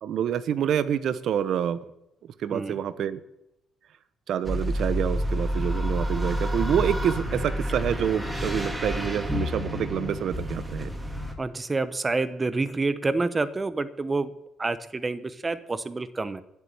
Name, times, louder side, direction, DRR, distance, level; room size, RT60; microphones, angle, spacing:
voice 1, 0.0-1.8 2.4-3.2 4.3-10.9, right 9 dB, 70° right, 14 dB, 0.8 m, -27 dB
sound 1, 4.4-11.3, equal, 10° right, 2.3 m, -29 dB
voice 2, 11.4-14.3 14.6-16.4, right 3 dB, 25° right, 13 dB, 0.9 m, -28 dB
10.0 x 8.2 x 8.8 m, 0.86 s
cardioid pair, 90°, 0 cm